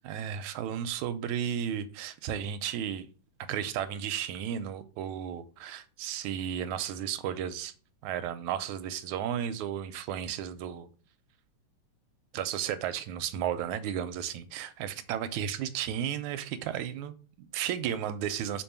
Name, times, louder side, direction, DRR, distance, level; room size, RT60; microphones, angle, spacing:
voice 1, 0.0-3.1 3.5-7.7 8.0-10.9 12.3-18.6, right 9 dB, 85° right, 2.0 m, -34 dB
5.3 x 5.3 x 5.8 m
omnidirectional pair, 3.4 m